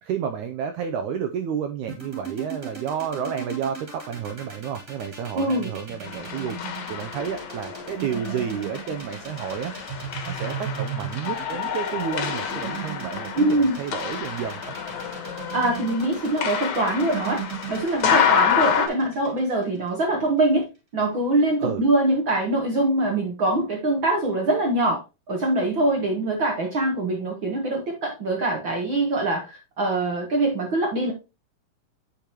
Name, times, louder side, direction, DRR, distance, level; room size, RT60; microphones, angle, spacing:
voice 1, 0.0-9.7 10.2-14.8 21.6-21.8, right 8 dB, 85° right, 1.7 m, -31 dB
sound 1, 1.9-20.0, right 7 dB, 25° right, 2.7 m, -36 dB
voice 2, 5.4-5.7 13.3-13.8 15.5-17.4 17.7-20.7 20.9-25.0 25.3-31.1, right 2 dB, 70° right, 1.1 m, -23 dB
sound 2, 6.1-18.9, left 8 dB, 70° left, 2.9 m, -28 dB
9.4 x 5.2 x 3.0 m
omnidirectional pair, 4.2 m